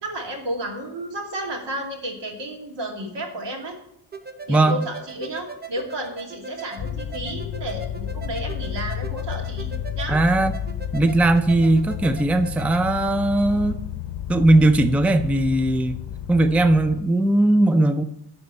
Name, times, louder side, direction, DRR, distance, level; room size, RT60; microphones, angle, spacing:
voice 1, 0.0-3.8 4.5-9.7 9.9-10.2, right 1 dB, 70° right, 1 dB, 2.7 m, -32 dB
sound 1, 4.1-12.8, right 4 dB, 20° right, 0.9 m, -39 dB
sound 2, 6.8-17.0, left 10 dB, 60° left, 0.8 m, -32 dB
voice 2, 10.1-10.5 10.9-13.8 14.3-15.9 16.3-18.0, right 2 dB, 5° right, 9 dB, 0.5 m, -18 dB
12.5 x 4.3 x 8.1 m, 0.81 s
cardioid pair, 95°, 44 cm